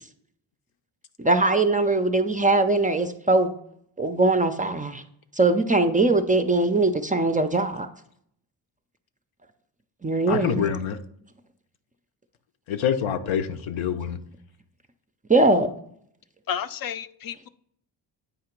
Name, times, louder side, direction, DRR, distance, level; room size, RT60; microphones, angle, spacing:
voice 1, 1.2-3.5 4.0-5.0 5.3-7.9 10.0-10.6 15.3-15.7, right 2 dB, 20° right, 8 dB, 0.4 m, -21 dB
voice 2, 10.3-11.0 12.7-14.2, left 8 dB, 75° left, 8 dB, 0.8 m, -26 dB
voice 3, 16.5-17.5, left 8 dB, 50° left, 14 dB, 0.5 m, -31 dB
8.4 x 2.9 x 5.8 m, 0.68 s
cardioid pair, 85°, 47 cm